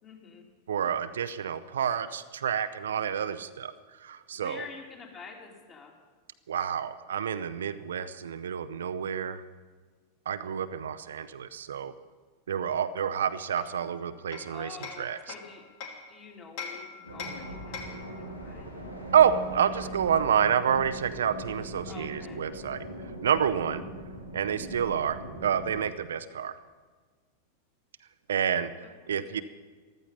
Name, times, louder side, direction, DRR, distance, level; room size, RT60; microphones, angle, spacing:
voice 1, 0.0-0.5 4.3-5.9 14.5-15.6 16.1-18.7 21.9-22.4 23.7-23.8 28.8-29.4, left 5 dB, 25° left, 1 dB, 2.9 m, -47 dB
voice 2, 0.7-3.7 4.0-4.6 6.5-9.4 10.3-11.9 12.5-15.3 19.1-22.8 23.2-23.8 24.3-26.6 28.3-28.7 29.1-29.4, right 8 dB, 65° right, 12 dB, 0.6 m, -28 dB
Hammer, 13.6-16.1 16.6-18.1, left 5 dB, 45° left, 2.2 m, -42 dB
sound 1, 17.1-25.8, right 1 dB, 90° left, 2.5 m, -41 dB
14.5 x 13.5 x 5.6 m, 1.5 s
figure-of-eight pair, 90°, 0 cm